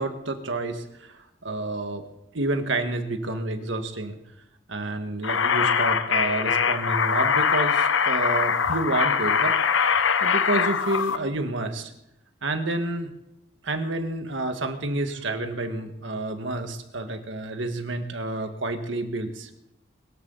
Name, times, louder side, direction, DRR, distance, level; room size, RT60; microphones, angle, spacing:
voice 1, 0.0-2.0 2.3-4.2 4.7-9.5 10.2-11.9 12.4-13.1 13.6-19.7, right 2 dB, 75° right, 6 dB, 1.7 m, -29 dB
sound 1, 5.2-11.2, left 6 dB, 85° left, 0.8 m, -22 dB
22.0 x 13.0 x 4.0 m, 0.85 s
head